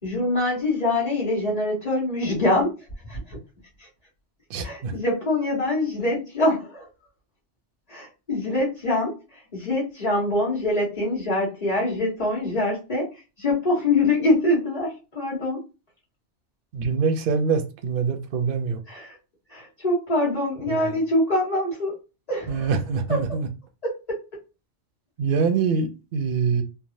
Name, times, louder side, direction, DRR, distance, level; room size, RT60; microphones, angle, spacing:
voice 1, 0.0-2.7 3.1-3.4 3.8-3.9 4.6-6.9 7.9-15.6 18.9-19.2 19.5-22.0 22.3-22.7 23.8-24.2, left 2 dB, 35° left, 1.4 m, -24 dB
voice 2, 4.5-4.9 16.7-18.8 20.7-21.0 22.5-23.5 25.2-26.6, right 5 dB, 60° right, 0.7 m, -24 dB
3.3 x 2.0 x 2.6 m
omnidirectional pair, 1.2 m